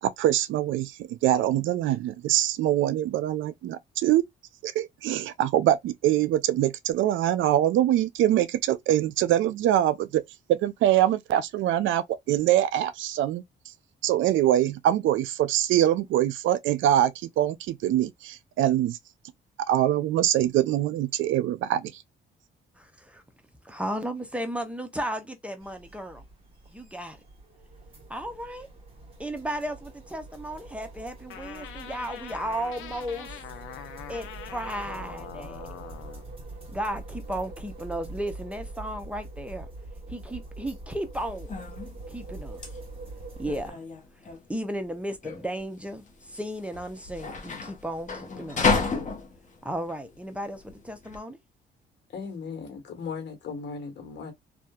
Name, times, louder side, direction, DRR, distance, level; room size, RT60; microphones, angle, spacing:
voice 1, 0.0-4.2 4.6-10.2 10.5-13.4 14.0-19.0 19.7-22.0, right 12 dB, 75° right, 0.4 m, -24 dB
voice 2, 22.8-23.2 23.6-26.2 26.7-27.2 28.1-28.7 29.2-33.4 34.1-35.7 36.7-39.7 40.1-41.5 42.1-42.6 43.4-43.8 44.1-48.8 49.6-51.4, right 1 dB, 5° right, 0.6 m, -34 dB
sound 1, 25.6-43.7, right 2 dB, 30° right, 1.4 m, -43 dB
sound 2, 31.3-36.2, left 10 dB, 85° left, 0.5 m, -43 dB
sound 3, 41.1-51.2, left 4 dB, 40° left, 0.9 m, -32 dB
voice 3, 52.1-54.3, left 5 dB, 60° left, 1.2 m, -37 dB
2.8 x 2.3 x 2.2 m
cardioid pair, 90°, 20 cm